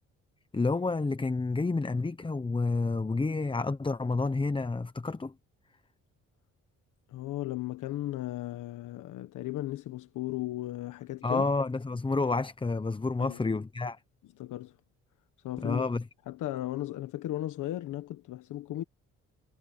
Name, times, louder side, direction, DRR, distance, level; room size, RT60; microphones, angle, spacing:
voice 1, 0.5-5.3 11.2-14.0 15.6-16.0, left 3 dB, 15° left, 0.9 m, -29 dB
voice 2, 7.1-11.5 13.2-13.4 14.4-14.8 15.4-15.9 16.3-18.8, left 15 dB, 85° left, 1.4 m, -36 dB
cardioid pair, 90°, 30 cm